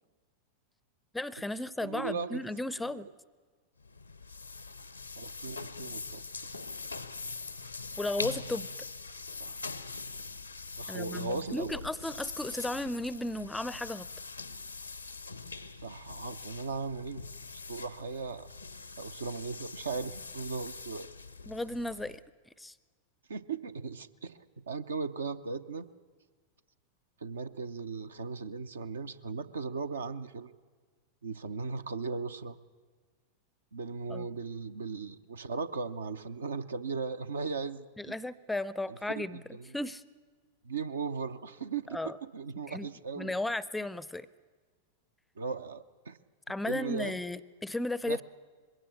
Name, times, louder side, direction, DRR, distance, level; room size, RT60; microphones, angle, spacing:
voice 1, 1.1-3.1 8.0-8.7 10.9-14.1 21.5-22.2 22.6-22.7 34.1-34.3 38.0-39.4 39.7-40.0 41.9-42.2 42.7-42.9 43.2-44.3 46.5-48.2, left 1 dB, 5° left, 19 dB, 0.5 m, -35 dB
voice 2, 1.8-2.5 2.8-3.0 5.2-6.2 9.4-9.6 10.8-11.8 15.8-17.2 17.7-18.5 19.0-21.1 23.3-24.4 24.7-25.9 27.2-30.5 31.2-32.6 33.7-38.1 38.9-39.7 40.6-43.3 45.4-46.2 46.7-47.2 48.1-48.2, right 4 dB, 70° right, 10 dB, 0.7 m, -37 dB
sound 1, 3.8-22.3, left 4 dB, 80° left, 0.7 m, -43 dB
21.5 x 16.5 x 8.5 m, 1.5 s
figure-of-eight pair, 90°, 0 cm